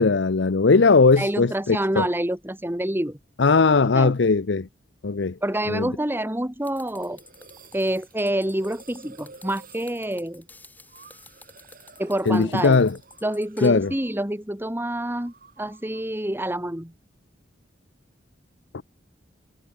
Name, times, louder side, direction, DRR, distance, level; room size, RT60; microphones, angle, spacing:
voice 1, 0.0-2.1 3.4-4.7 5.0-5.3 5.7-5.9 12.3-13.0 13.6-13.9 18.7-18.8, left 4 dB, 75° left, 0.7 m, -19 dB
voice 2, 1.2-3.2 3.9-4.1 5.4-7.2 7.7-10.4 12.0-12.9 13.2-16.9, right 1 dB, 10° right, 2.3 m, -27 dB
sound 1, 6.6-13.7, left 2 dB, 10° left, 7.3 m, -50 dB
sound 2, 7.0-14.4 14.6-16.2, right 4 dB, 50° right, 6.7 m, -51 dB
head